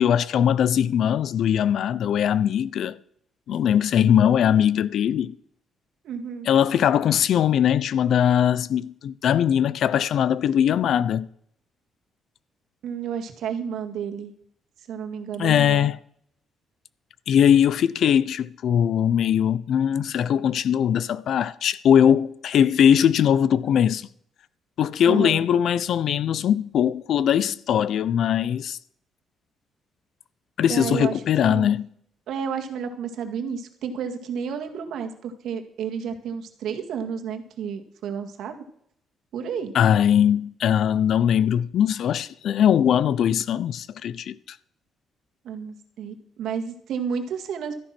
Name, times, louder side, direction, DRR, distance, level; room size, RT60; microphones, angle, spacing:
voice 1, 0.0-3.0 3.5-5.3 6.4-11.3 15.4-16.0 17.3-24.1 24.8-28.8 30.6-31.9 39.7-44.6, left 9 dB, 70° left, 0.6 m, -21 dB
voice 2, 6.0-6.5 12.8-14.3 14.9-15.9 25.1-25.4 30.7-31.7 32.3-38.6 39.3-39.7 45.4-47.7, right 7 dB, 75° right, 1.9 m, -31 dB
13.5 x 10.0 x 6.0 m
cardioid pair, 90°, 0 cm